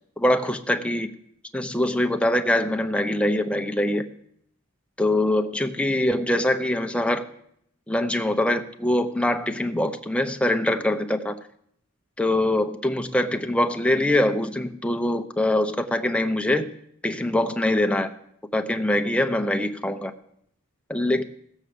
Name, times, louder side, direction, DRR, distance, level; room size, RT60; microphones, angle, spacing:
voice 1, 0.2-1.1 1.5-4.1 5.0-7.2 7.9-11.4 12.2-16.7 17.0-18.1 18.5-20.1 20.9-21.2, left 1 dB, 5° left, 6 dB, 0.7 m, -23 dB
16.0 x 7.3 x 6.8 m, 0.71 s
head